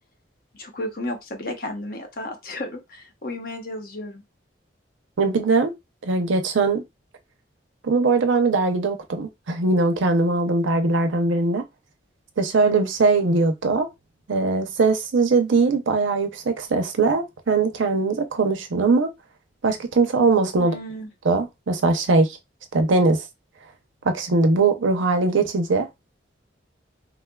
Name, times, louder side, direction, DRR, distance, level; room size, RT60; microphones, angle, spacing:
voice 1, 0.5-4.2 20.6-21.1, left 1 dB, 50° left, 0.8 m, -33 dB
voice 2, 5.2-5.7 6.0-6.8 7.8-11.6 12.4-13.9 14.3-19.1 19.6-20.7 21.2-22.4 22.7-23.2 24.0-25.9, right 3 dB, 85° right, 0.6 m, -21 dB
3.7 x 2.3 x 2.2 m
head